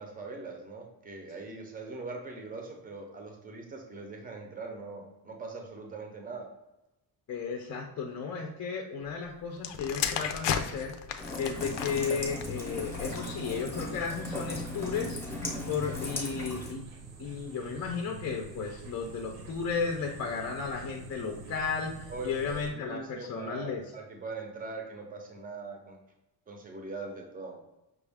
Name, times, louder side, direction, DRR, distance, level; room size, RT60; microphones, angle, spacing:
voice 1, 0.0-6.5 22.1-26.0 26.5-27.6, right 3 dB, 20° right, 2 dB, 0.7 m, -41 dB
voice 2, 7.3-10.9 11.4-15.2 15.7-16.8 17.2-23.8, left 5 dB, 40° left, 0 dB, 0.6 m, -34 dB
sound 1, 9.6-13.4 14.2-14.5, left 8 dB, 85° left, 0.6 m, -35 dB
Rain, 11.2-16.7, left 2 dB, 5° left, 0.8 m, -37 dB
sound 2, 11.4-22.7, right 4 dB, 60° right, 0.9 m, -46 dB
6.0 x 2.4 x 3.4 m, 0.95 s
cardioid pair, 165°, 41 cm